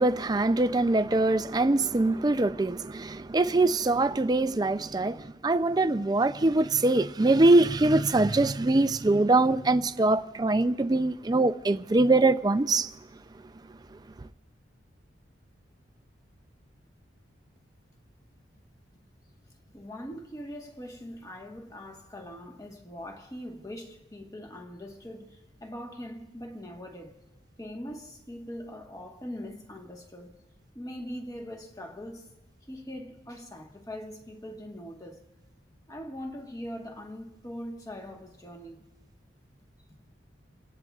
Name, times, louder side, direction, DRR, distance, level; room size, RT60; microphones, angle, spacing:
voice 1, 0.0-12.9, right 2 dB, 20° right, 0.4 m, -23 dB
voice 2, 19.7-27.2 27.6-30.4 30.7-32.3 32.7-35.2 35.9-38.9, equal, 20° left, 1.4 m, -41 dB
29.5 x 17.5 x 2.4 m
head